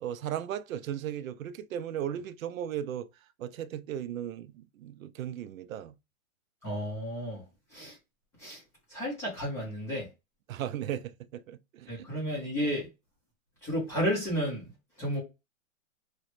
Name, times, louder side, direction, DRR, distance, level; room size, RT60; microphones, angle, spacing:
voice 1, 0.0-3.1 3.4-5.9 10.5-12.1, right 10 dB, 75° right, 0.5 m, -36 dB
voice 2, 6.6-7.4 7.7-8.0 8.4-8.6 8.9-10.1 11.9-12.9 13.6-14.7 15.0-15.2, equal, 5° left, 0.4 m, -32 dB
3.0 x 2.1 x 2.9 m
hypercardioid pair, 145°, 42 cm